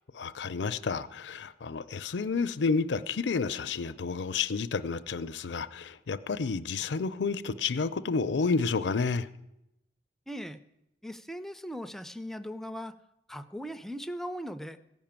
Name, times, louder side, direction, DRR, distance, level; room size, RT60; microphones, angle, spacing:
voice 1, 0.1-9.3, left 4 dB, 70° left, 13 dB, 0.5 m, -30 dB
voice 2, 10.3-10.6 11.0-13.0 13.3-14.8, equal, ahead, 10 dB, 0.4 m, -39 dB
15.5 x 5.9 x 8.8 m, 0.89 s
head